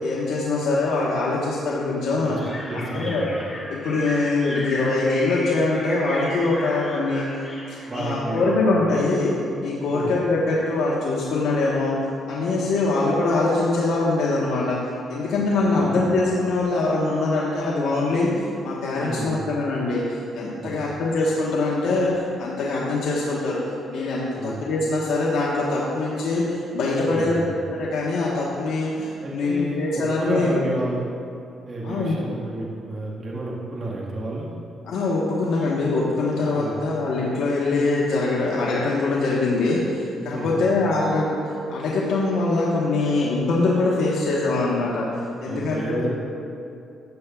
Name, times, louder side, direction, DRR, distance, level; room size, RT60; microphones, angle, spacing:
voice 1, 0.0-2.4 2.7-3.2 3.7-7.3 7.7-9.3 9.6-12.0 12.3-14.8 15.1-18.3 18.6-23.6 23.9-27.4 27.7-30.6 31.8-32.2 34.8-45.1 45.4-46.1, left 3 dB, 75° left, -5 dB, 1.2 m, -23 dB
voice 2, 2.2-3.3 7.9-8.6 9.9-10.1 15.7-16.1 19.0-19.5 20.6-20.9 24.4-24.6 27.0-27.5 29.2-31.0 31.7-34.5 36.5-36.8 40.3-40.6 45.5-46.1, right 2 dB, 40° right, -5 dB, 1.6 m, -31 dB
sound 1, 2.4-8.4, left 1 dB, 20° left, 2.1 m, -35 dB
13.5 x 8.0 x 2.4 m, 2.6 s
cardioid pair, 90°, 0 cm